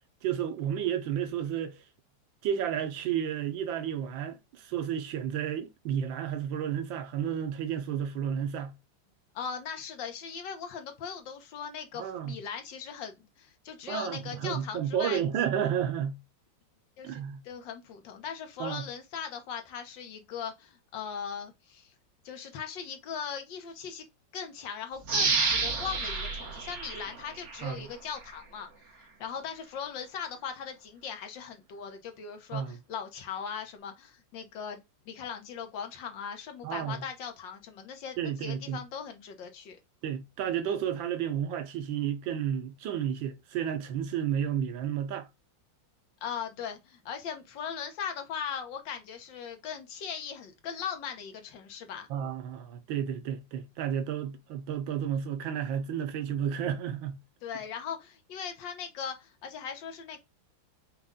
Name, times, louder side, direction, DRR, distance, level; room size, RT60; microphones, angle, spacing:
voice 1, 0.2-1.8 2.4-8.7 11.9-12.4 13.9-16.2 17.0-17.4 18.6-18.9 27.6-27.9 32.5-32.8 36.6-37.0 38.2-38.8 40.0-45.3 52.1-57.2, right 9 dB, 90° right, 1.5 m, -32 dB
voice 2, 9.3-15.2 17.0-21.9 22.2-24.0 24.3-28.7 29.0-39.8 46.2-52.1 57.4-60.2, left 7 dB, 75° left, 1.6 m, -39 dB
sound 1, 25.1-27.7 28.2-28.3, right 4 dB, 45° right, 1.3 m, -30 dB
5.2 x 2.4 x 3.5 m
omnidirectional pair, 2.0 m